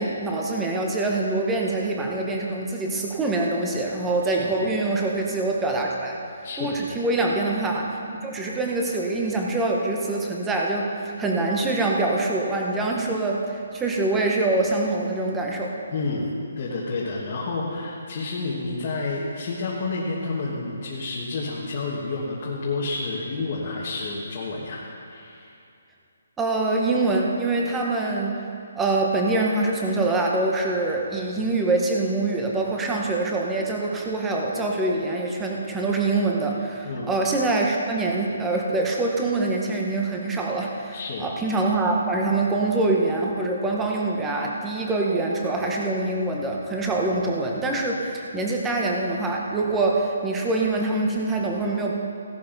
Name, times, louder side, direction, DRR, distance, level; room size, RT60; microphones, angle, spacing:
voice 1, 0.0-6.2 6.6-7.9 8.2-15.8 26.4-28.5 28.8-51.9, right 2 dB, 5° right, -1 dB, 0.8 m, -24 dB
voice 2, 4.3-4.6 6.4-6.9 15.9-16.3 16.6-25.5 36.8-37.1 40.9-41.3, left 3 dB, 25° left, -6 dB, 1.4 m, -30 dB
16.0 x 11.5 x 3.9 m, 2.6 s
hypercardioid pair, 180°, 0 cm